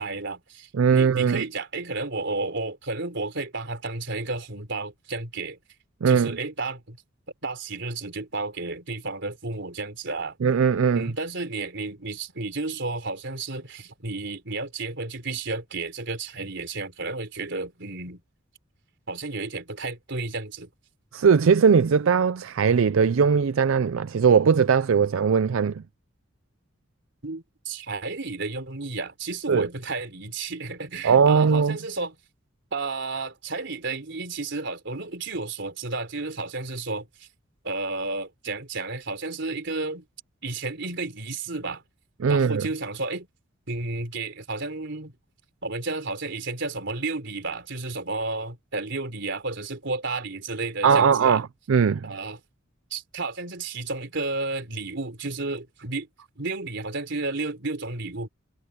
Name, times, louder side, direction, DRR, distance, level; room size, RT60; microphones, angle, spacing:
voice 1, 0.0-5.6 6.1-7.0 7.4-10.4 10.9-18.2 19.1-20.7 27.2-32.2 32.7-37.3 37.6-40.0 40.4-41.8 42.3-43.3 43.7-45.1 45.6-51.4 52.0-52.4 52.9-56.1 56.4-58.3, right 3 dB, 65° right, 3.8 m, -32 dB
voice 2, 0.7-1.4 6.0-6.4 10.4-11.1 21.1-25.8 29.5-29.7 31.0-31.8 42.2-42.7 50.8-51.4 51.7-52.1, right 6 dB, 85° right, 0.4 m, -20 dB
head